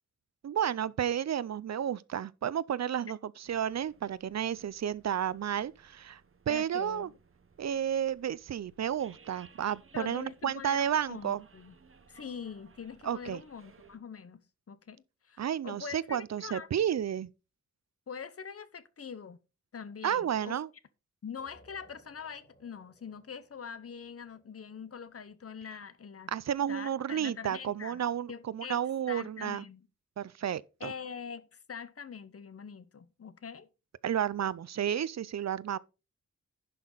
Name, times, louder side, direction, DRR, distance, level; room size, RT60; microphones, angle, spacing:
voice 1, 0.4-6.2 6.5-7.1 7.6-11.4 13.0-13.4 15.4-17.3 20.0-20.7 26.3-29.6 30.2-30.9 34.0-35.8, right 9 dB, 65° right, 0.5 m, -32 dB
sound 1, 3.4-14.0, right 5 dB, 45° right, 1.1 m, -61 dB
voice 2, 6.5-7.2 9.9-11.7 12.1-16.7 18.1-19.4 19.7-20.6 21.2-26.3 26.7-28.0 28.3-28.8 29.1-29.9 30.8-33.7, left 6 dB, 50° left, 0.8 m, -44 dB
sound 2, 21.4-26.7, equal, 20° left, 2.6 m, -64 dB
11.0 x 5.9 x 3.9 m
wide cardioid pair, 145°, 29 cm